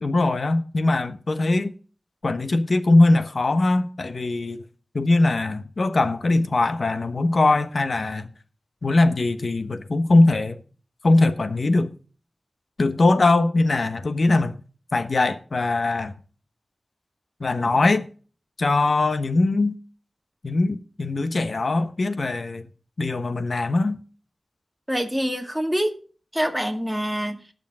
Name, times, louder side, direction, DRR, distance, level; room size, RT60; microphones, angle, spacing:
voice 1, 0.0-1.7 2.2-4.6 4.9-8.3 8.8-10.6 11.0-11.9 12.8-14.6 14.9-16.1 17.4-18.1 18.6-19.8 20.4-22.7 23.0-24.0, left 2 dB, 70° left, 1.1 m, -21 dB
voice 2, 24.9-26.0 26.3-27.4, equal, 5° right, 2.2 m, -25 dB
19.5 x 6.7 x 3.7 m
wide cardioid pair, 60°, 0 cm